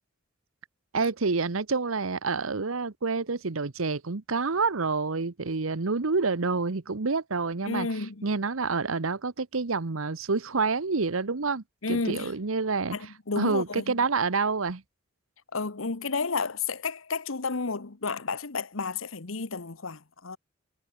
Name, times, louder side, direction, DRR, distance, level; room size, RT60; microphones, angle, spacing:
voice 1, 0.9-7.9 8.2-13.1 13.4-14.8, right 4 dB, 85° right, 1.0 m, -28 dB
voice 2, 7.6-8.2 11.8-12.3 12.9-13.9 15.5-20.4, left 4 dB, 80° left, 1.3 m, -31 dB
head